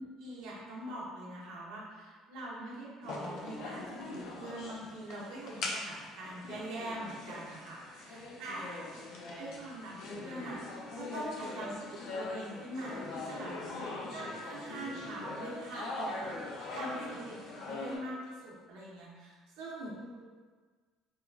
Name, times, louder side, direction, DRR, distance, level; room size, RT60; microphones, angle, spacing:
voice 1, 0.0-8.8 9.4-13.5 14.1-19.9, right 1 dB, 70° right, -5 dB, 0.6 m, -43 dB
sound 1, 3.0-18.0, left 2 dB, 50° left, 0.4 m, -42 dB
voice 2, 8.2-9.1 11.5-11.8 13.7-14.1 16.1-16.6 20.0-20.2, equal, 20° right, -2 dB, 0.4 m, -55 dB
3.0 x 2.3 x 2.3 m, 1.5 s
cardioid pair, 180°, 0 cm